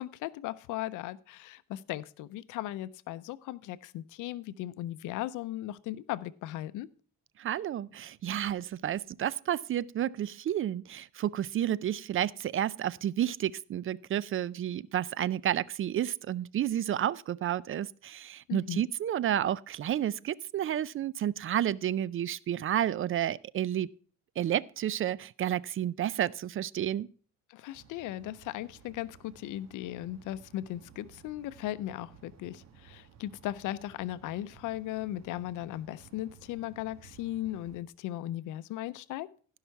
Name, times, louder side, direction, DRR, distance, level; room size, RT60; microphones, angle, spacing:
voice 1, 0.0-6.9 18.5-18.8 27.5-39.3, left 14 dB, 90° left, 0.5 m, -37 dB
voice 2, 7.4-23.9 24.4-27.1, right 11 dB, 45° right, 0.4 m, -31 dB
sound 1, 27.7-37.8, right 8 dB, 60° right, 1.3 m, -56 dB
15.5 x 5.6 x 4.6 m
cardioid pair, 90°, 30 cm